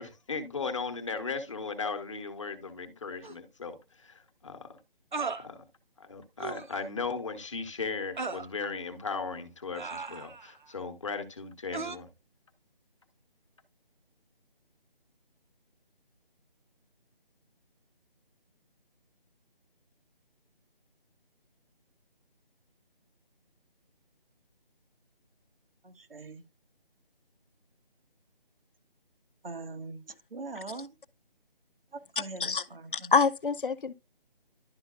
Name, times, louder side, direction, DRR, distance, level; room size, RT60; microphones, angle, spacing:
voice 1, 0.0-4.7 5.4-5.6 6.0-12.1, left 4 dB, 30° left, 1.1 m, -37 dB
sound 1, 3.2-3.4 5.1-5.5 6.4-6.7 8.2-8.5 9.7-10.5 11.7-12.0, right 4 dB, 55° right, 0.9 m, -36 dB
voice 2, 25.8-26.4 29.4-30.9 31.9-33.1, right 3 dB, 70° right, 1.6 m, -42 dB
voice 3, 32.9-33.9, left 5 dB, 65° left, 0.7 m, -26 dB
11.5 x 5.7 x 2.4 m
figure-of-eight pair, 165°, 29 cm